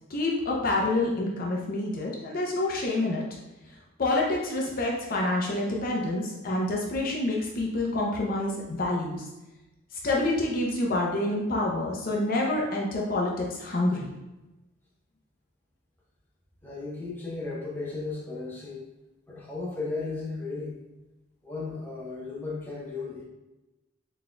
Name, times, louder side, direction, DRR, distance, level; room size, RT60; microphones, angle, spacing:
voice 1, 0.1-3.2 4.0-9.3 10.0-14.1, left 2 dB, 45° left, -2 dB, 0.6 m, -27 dB
voice 2, 16.6-18.8 19.3-20.8 21.4-23.2, left 3 dB, 10° left, -5 dB, 0.7 m, -35 dB
4.1 x 3.6 x 2.2 m, 1.0 s
head